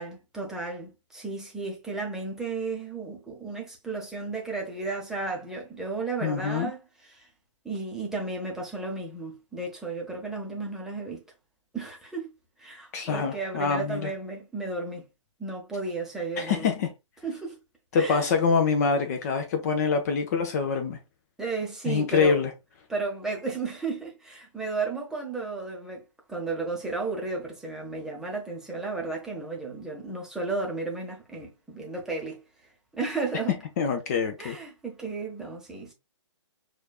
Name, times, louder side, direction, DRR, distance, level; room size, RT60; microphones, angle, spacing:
voice 1, 0.0-7.3 7.6-11.2 11.7-12.3 12.6-15.0 15.4-16.8 17.2-17.6 17.9-18.3 21.4-22.4 22.9-32.4 32.9-33.5 34.4-35.9, right 3 dB, 5° right, 0.7 m, -33 dB
voice 2, 6.2-6.7 12.9-14.1 16.4-16.9 17.9-21.0 21.9-22.5 33.8-34.6, left 5 dB, 30° left, 0.5 m, -25 dB
6.1 x 2.4 x 2.3 m
figure-of-eight pair, 130°, 16 cm